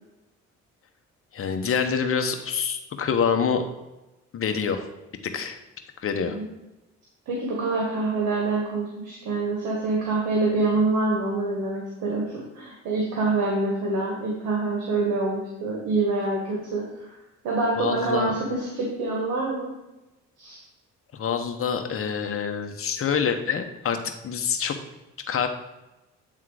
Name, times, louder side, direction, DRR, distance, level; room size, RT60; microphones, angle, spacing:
voice 1, 1.3-3.6 4.3-4.8 5.3-5.6 6.0-6.4 17.8-18.3 21.1-24.0 24.2-24.7 25.3-25.5, left 6 dB, 45° left, 6 dB, 1.0 m, -26 dB
voice 2, 7.3-17.1 17.4-19.7 20.4-20.6, right 3 dB, 85° right, -2 dB, 1.5 m, -26 dB
8.6 x 3.8 x 4.8 m, 1.0 s
cardioid pair, 90°, 30 cm